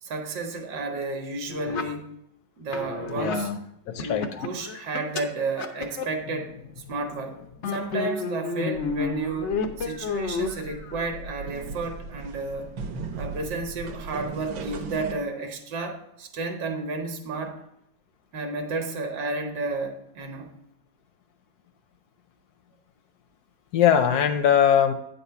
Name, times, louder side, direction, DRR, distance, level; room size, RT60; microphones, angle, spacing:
voice 1, 0.0-2.1 2.6-3.5 4.0-7.4 7.7-12.7 13.2-17.6 18.3-20.5, right 3 dB, 65° right, 4 dB, 1.5 m, -32 dB
sound 1, 1.5-1.8 2.7-3.4 3.9-5.2 5.6-7.2 7.5-11.1, left 5 dB, 85° left, 0.6 m, -31 dB
voice 2, 3.2-3.6 3.9-4.3 23.7-24.9, left 8 dB, 70° left, 8 dB, 1.0 m, -21 dB
sound 2, 8.7-15.1, right 4 dB, 80° right, 1.5 m, -38 dB
8.8 x 4.1 x 5.6 m, 0.78 s
omnidirectional pair, 2.1 m